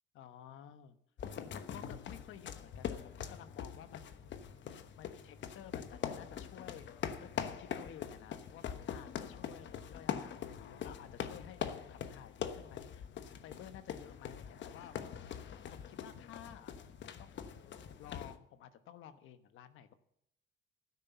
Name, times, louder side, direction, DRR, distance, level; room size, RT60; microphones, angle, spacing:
voice 1, 0.1-1.0 1.4-4.2 5.0-7.3 7.6-13.1 13.4-15.0 15.7-16.7 17.2-17.6 18.0-19.9, left 10 dB, 85° left, 11 dB, 1.2 m, -53 dB
sound 1, 1.2-18.4, left 8 dB, 65° left, 1.1 m, -43 dB
12.5 x 10.0 x 6.9 m, 0.72 s
cardioid pair, 90°, 20 cm